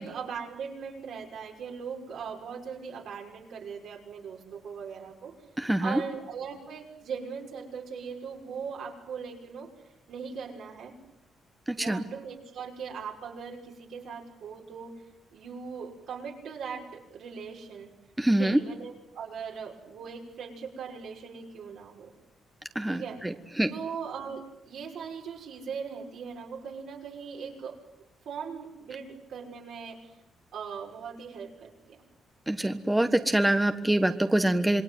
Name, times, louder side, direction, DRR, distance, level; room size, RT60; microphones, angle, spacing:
voice 1, 0.0-5.3 5.8-9.7 10.1-10.9 11.8-14.9 15.3-17.9 18.3-22.1 22.9-23.2 23.7-27.8 28.2-30.1 30.5-32.0, right 6 dB, 75° right, 0 dB, 6.3 m, -39 dB
voice 2, 5.6-6.0 11.8-12.0 18.2-18.6 22.7-23.0 23.6-23.7 32.5-34.8, right 1 dB, 10° right, 8 dB, 1.4 m, -24 dB
27.0 x 21.5 x 9.4 m, 0.90 s
cardioid pair, 110°, 0 cm